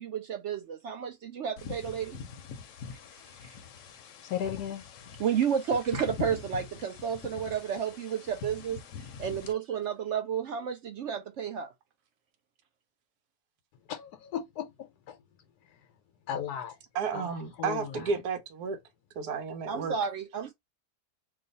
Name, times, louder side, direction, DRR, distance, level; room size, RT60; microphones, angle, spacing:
voice 1, 0.0-2.2 3.4-3.6 5.2-8.8 9.2-11.7 19.7-20.5, right 7 dB, 70° right, 0.7 m, -31 dB
sound 1, 1.6-9.5, left 6 dB, 65° left, 0.9 m, -43 dB
voice 2, 4.2-4.8 13.9-15.2 15.7-15.9 16.3-16.8 17.1-17.3 17.6-18.1, left 9 dB, 85° left, 1.2 m, -36 dB
voice 3, 16.9-18.8 19.1-19.9, right 5 dB, 85° right, 1.3 m, -32 dB
3.1 x 2.3 x 3.9 m
omnidirectional pair, 1.7 m